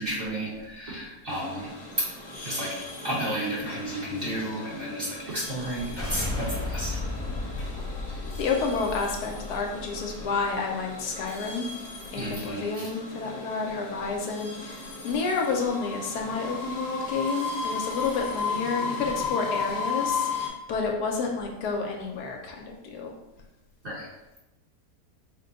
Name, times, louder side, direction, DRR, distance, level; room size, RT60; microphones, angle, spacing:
voice 1, 0.0-1.7 2.0-2.1 2.4-2.8 3.0-7.0 12.1-12.9 23.8-24.1, equal, 40° right, -7 dB, 1.1 m, -32 dB
sound 1, 1.3-20.5, left 4 dB, 55° left, 1.1 m, -36 dB
sound 2, 5.7-10.7, left 2 dB, 10° left, 0.7 m, -34 dB
voice 2, 8.4-11.7 12.1-23.1, left 4 dB, 75° left, 1 dB, 1.1 m, -30 dB
4.7 x 2.2 x 3.8 m, 0.97 s
omnidirectional pair, 1.8 m